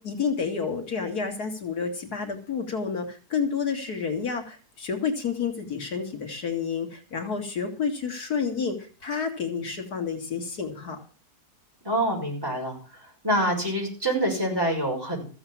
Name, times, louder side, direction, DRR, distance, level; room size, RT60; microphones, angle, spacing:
voice 1, 0.0-11.0, left 6 dB, 80° left, 4 dB, 2.6 m, -30 dB
voice 2, 11.8-12.8 13.2-15.2, right 1 dB, 15° right, -1 dB, 5.7 m, -26 dB
14.5 x 7.9 x 7.2 m, 0.39 s
omnidirectional pair, 1.6 m